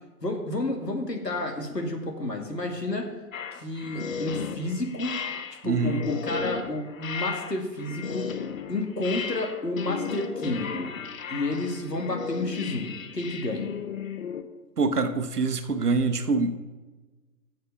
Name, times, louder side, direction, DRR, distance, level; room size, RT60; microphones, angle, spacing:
voice 1, 0.2-3.1 3.5-5.2 5.6-8.3 8.7-10.9 11.3-13.7, left 2 dB, 85° left, 3 dB, 2.1 m, -30 dB
sound 1, 3.3-14.4, left 6 dB, 55° left, 1.0 m, -35 dB
voice 2, 5.6-6.0 14.8-16.6, right 4 dB, 70° right, 8 dB, 1.2 m, -25 dB
9.6 x 6.6 x 6.7 m, 1.3 s
figure-of-eight pair, 125°, 48 cm